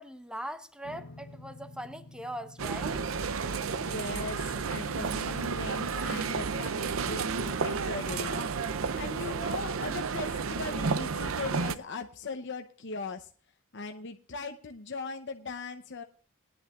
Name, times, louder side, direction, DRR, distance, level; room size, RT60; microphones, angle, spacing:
voice 1, 0.0-3.1, equal, 5° right, 11 dB, 0.8 m, -41 dB
sound 1, 0.8-7.4, left 2 dB, 80° left, 1.3 m, -53 dB
sound 2, 2.6-11.7, right 5 dB, 80° right, 0.6 m, -32 dB
voice 2, 3.6-13.3 13.7-16.0, left 3 dB, 60° left, 6 dB, 0.8 m, -39 dB
20.0 x 10.5 x 2.4 m, 0.41 s
head